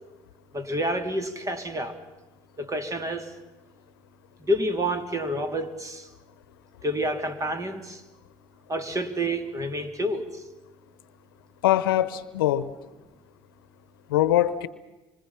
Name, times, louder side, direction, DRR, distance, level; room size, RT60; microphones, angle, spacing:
voice 1, 0.5-2.0 2.6-3.3 4.4-6.1 6.8-8.0 8.7-10.4, equal, 30° right, 3.1 m, -29 dB
voice 2, 11.6-12.7 14.1-14.7, left 13 dB, 90° left, 0.9 m, -22 dB
26.5 x 25.5 x 5.8 m
hypercardioid pair, 65°, 12 cm